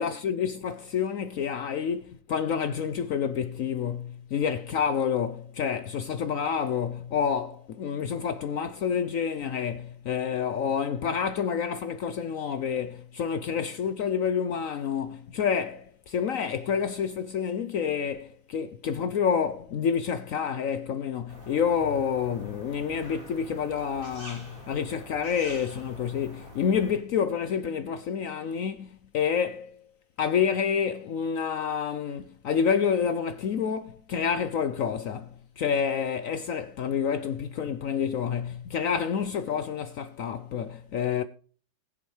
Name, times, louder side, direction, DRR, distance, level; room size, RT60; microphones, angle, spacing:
voice 1, 0.0-29.8 30.2-41.2, left 7 dB, 80° left, 0.7 m, -28 dB
sound 1, 21.3-27.0, equal, 25° right, 3.4 m, -46 dB
20.5 x 7.4 x 3.2 m
omnidirectional pair, 2.2 m